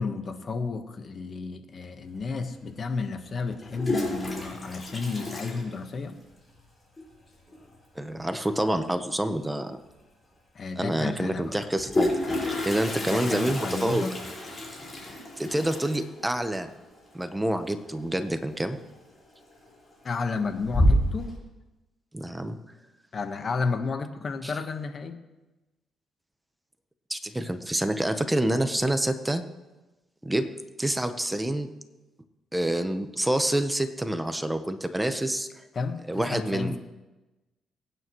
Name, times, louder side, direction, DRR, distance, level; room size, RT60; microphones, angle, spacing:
voice 1, 0.0-6.2 10.5-11.6 13.0-14.1 20.0-21.3 23.1-25.2 35.7-36.8, left 4 dB, 45° left, 7 dB, 1.3 m, -32 dB
Toilet flush, 2.2-2.3 3.5-6.3 6.6-6.7 7.0-7.1 7.3-7.7 9.5-9.6 9.9-10.0 11.5-18.2 18.5-19.0 19.4-19.9 20.3-21.3, left 1 dB, 25° left, 4.9 m, -29 dB
voice 2, 7.9-9.8 10.8-12.1 12.4-14.0 15.4-16.7 17.1-18.8 22.1-22.6 24.4-24.5 27.1-29.4 30.2-31.7 32.5-35.5 36.1-36.8, right 1 dB, 10° right, 8 dB, 1.0 m, -27 dB
23.5 x 9.3 x 3.1 m, 1.1 s
cardioid pair, 90°, 0 cm